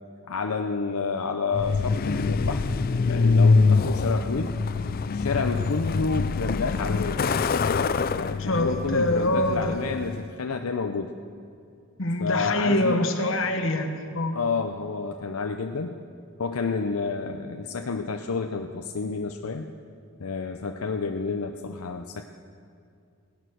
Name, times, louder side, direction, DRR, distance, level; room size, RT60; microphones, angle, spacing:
voice 1, 0.3-2.7 3.0-4.5 5.1-7.2 8.1-11.1 12.2-13.1 14.3-16.0 16.4-19.7 20.2-22.2, left 4 dB, 85° left, 5 dB, 0.7 m, -29 dB
Truck, 1.5-10.3, left 4 dB, 40° left, 0.4 m, -24 dB
voice 2, 8.4-9.8 12.0-14.4, left 1 dB, 60° left, 5 dB, 1.3 m, -25 dB
17.0 x 11.0 x 6.3 m, 2.4 s
head